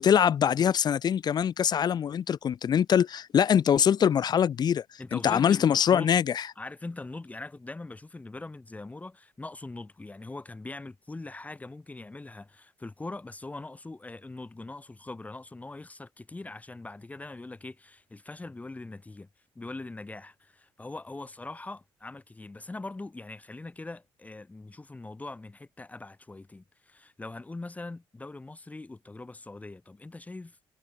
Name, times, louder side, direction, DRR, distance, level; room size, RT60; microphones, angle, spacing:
voice 1, 0.0-4.8 5.1-6.4, left 8 dB, 40° left, 0.7 m, -23 dB
voice 2, 5.0-5.6 5.9-6.1 6.6-19.3 19.6-30.6, left 2 dB, 15° left, 1.8 m, -42 dB
cardioid pair, 120°, 11 cm